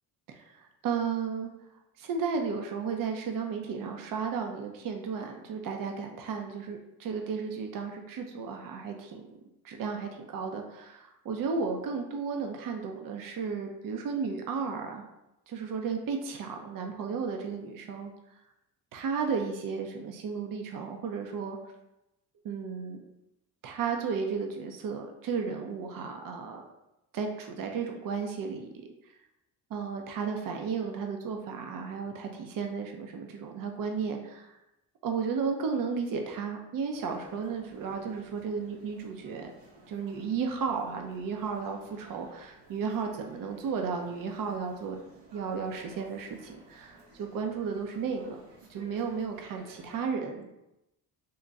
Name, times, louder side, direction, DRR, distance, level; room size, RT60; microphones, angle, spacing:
voice 1, 0.3-1.5 2.0-9.4 9.6-15.1 15.5-18.1 18.9-21.6 22.4-23.0 23.6-26.6 27.1-28.7 29.7-34.6 35.0-39.5 39.9-45.0 45.3-48.4 48.7-50.5, right 5 dB, 55° right, 4 dB, 0.7 m, -34 dB
sound 1, 36.9-50.1, right 1 dB, 80° right, 1.0 m, -56 dB
3.8 x 2.2 x 3.9 m, 0.89 s
supercardioid pair, 75°, 40 cm